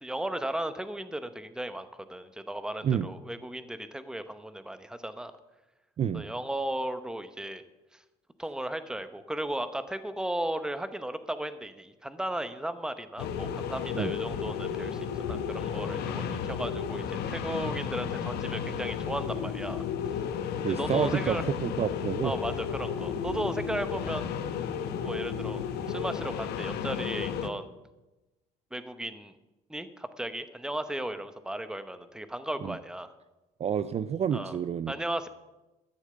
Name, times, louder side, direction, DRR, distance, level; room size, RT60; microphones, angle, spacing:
voice 1, 0.0-5.3 6.1-7.6 7.9-8.0 8.4-19.8 20.8-21.4 22.2-24.3 25.0-27.7 28.7-29.3 29.7-33.1 34.3-34.5 34.9-35.3, right 1 dB, 5° right, 11 dB, 0.9 m, -35 dB
sound 1, 13.2-27.5, left 7 dB, 75° left, 1.1 m, -33 dB
voice 2, 20.6-22.3 23.3-23.4 32.6-32.8 33.6-35.0, right 8 dB, 40° right, 13 dB, 0.5 m, -29 dB
13.0 x 7.1 x 8.0 m, 1.1 s
cardioid pair, 110°, 17 cm